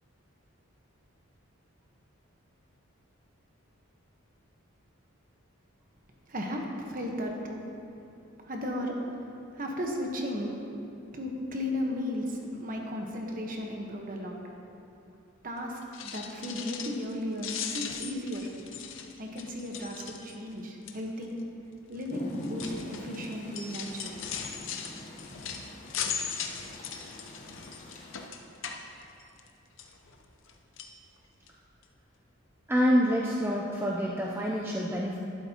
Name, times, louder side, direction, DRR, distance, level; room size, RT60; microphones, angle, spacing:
voice 1, 6.3-7.6 8.4-10.6 11.1-14.4 15.4-18.5 19.2-21.4 21.9-24.2, left 1 dB, 40° right, 0 dB, 1.1 m, -35 dB
sound 1, 15.8-17.1 17.4-20.5 20.9-21.2 21.9-29.5 29.8-30.5 30.8-30.9 31.5-31.6 31.8-31.9, left 7 dB, 65° left, 0.7 m, -39 dB
Rain, 22.1-28.3, left 1 dB, 35° left, 1.0 m, -44 dB
voice 2, 32.7-35.2, equal, 10° right, -2 dB, 0.5 m, -27 dB
11.5 x 11.5 x 2.9 m, 2.7 s
head